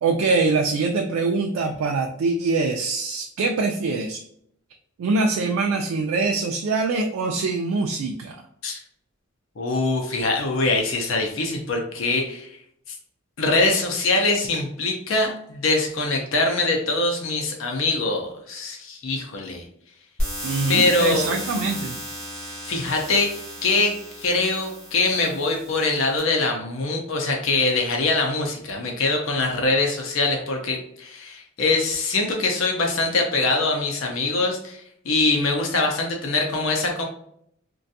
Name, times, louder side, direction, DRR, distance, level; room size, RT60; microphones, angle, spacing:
voice 1, 0.0-4.2 5.0-8.4 20.4-22.0, right 3 dB, 85° right, 3 dB, 0.3 m, -23 dB
voice 2, 9.6-12.5 13.4-19.6 20.7-21.3 22.6-23.3 23.6-23.9 24.2-37.0, left 3 dB, 70° left, 2 dB, 0.5 m, -23 dB
sound 1, 20.2-26.2, equal, 5° left, 0.9 m, -34 dB
2.5 x 2.2 x 2.6 m, 0.69 s
head